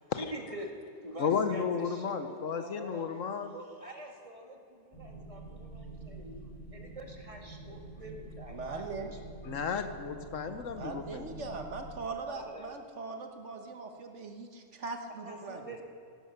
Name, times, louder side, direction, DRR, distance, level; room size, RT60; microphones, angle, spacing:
voice 1, 0.2-3.1 3.5-6.4 6.7-9.3 12.2-12.8 15.2-15.8, equal, 25° right, 2 dB, 1.9 m, -45 dB
voice 2, 1.2-3.5 9.4-11.5, left 6 dB, 70° left, 9 dB, 1.3 m, -33 dB
sound 1, 4.9-12.0, right 2 dB, 25° left, 2.0 m, -47 dB
voice 3, 8.5-9.1 10.8-15.8, right 3 dB, 60° right, 5 dB, 1.4 m, -40 dB
16.5 x 12.0 x 6.6 m, 2.6 s
omnidirectional pair, 1.4 m